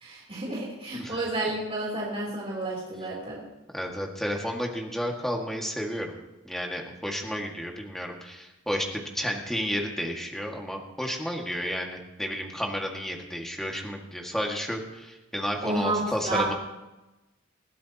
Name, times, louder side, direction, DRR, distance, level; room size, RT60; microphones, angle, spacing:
voice 1, 0.0-3.4 15.6-16.5, right 2 dB, 30° right, -4 dB, 3.6 m, -30 dB
voice 2, 3.7-6.1 6.4-16.5, equal, ahead, 0 dB, 1.9 m, -32 dB
21.0 x 15.5 x 3.0 m, 1.0 s
head